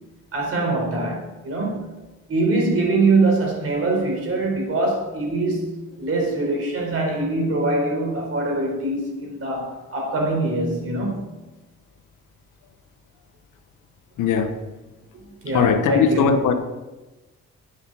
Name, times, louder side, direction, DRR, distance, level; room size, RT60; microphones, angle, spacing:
voice 1, 0.3-1.9 2.3-11.2 15.1-16.4, right 2 dB, 50° right, 0 dB, 4.3 m, -23 dB
voice 2, 14.2-14.5 15.5-16.5, left 6 dB, 80° left, 7 dB, 1.2 m, -19 dB
9.7 x 8.1 x 6.2 m, 1.1 s
cardioid pair, 90°, 30 cm